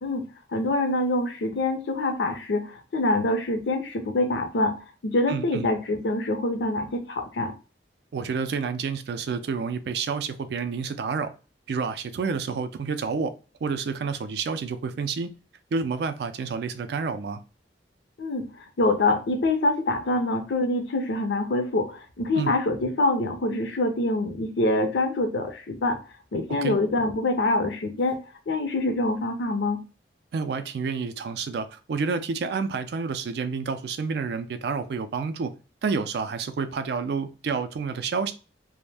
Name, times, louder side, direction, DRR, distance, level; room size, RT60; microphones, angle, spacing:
voice 1, 0.0-7.5 18.2-18.5 18.8-26.0 26.3-29.8, left 2 dB, 75° left, 0.5 m, -25 dB
voice 2, 5.3-5.7 8.1-11.3 11.7-13.3 13.6-15.3 15.7-17.4 22.3-22.5 26.5-26.8 30.3-35.5 35.8-38.3, right 5 dB, 65° right, 0.3 m, -29 dB
2.5 x 2.0 x 3.3 m
head